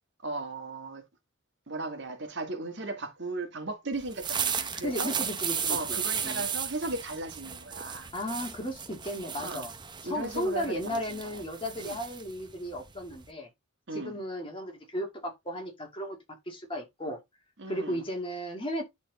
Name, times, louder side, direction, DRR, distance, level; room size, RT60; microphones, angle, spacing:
voice 1, 0.2-1.0 1.7-5.1 5.7-8.1 9.4-9.7 10.0-11.4 11.8-12.0 13.9-14.2 17.6-18.0, right 2 dB, 55° right, 1.7 m, -36 dB
sound 1, 4.0-13.3, right 7 dB, 20° right, 0.7 m, -35 dB
voice 2, 4.8-6.4 8.1-9.7 10.0-13.5 13.9-16.2 16.5-17.2 17.7-18.8, equal, 25° left, 2.3 m, -35 dB
10.5 x 4.0 x 4.1 m
head